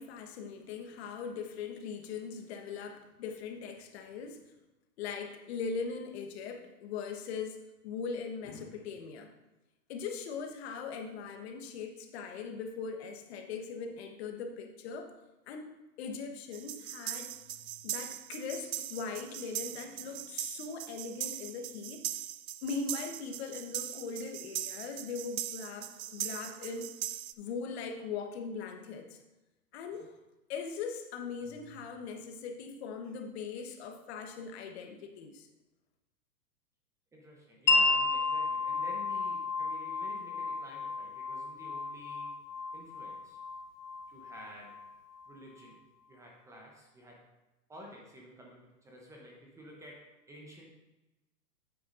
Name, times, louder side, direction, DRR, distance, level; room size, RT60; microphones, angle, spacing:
voice 1, 0.0-4.4 5.0-9.3 9.9-15.1 15.5-15.7 16.0-22.0 22.6-26.9 27.4-29.2 29.7-30.2 30.5-35.5, left 5 dB, 40° left, 5 dB, 1.1 m, -40 dB
sound 1, 16.5-27.3, right 12 dB, 55° right, 0.5 m, -40 dB
voice 2, 37.1-42.4 42.7-43.4 44.1-44.8 45.3-45.8 46.1-47.3 47.7-50.7, equal, 5° right, -1 dB, 0.7 m, -52 dB
Wind chime, 37.7-45.3, left 3 dB, 80° left, 1.1 m, -32 dB
9.5 x 8.4 x 2.6 m, 1.0 s
hypercardioid pair, 135°, 49 cm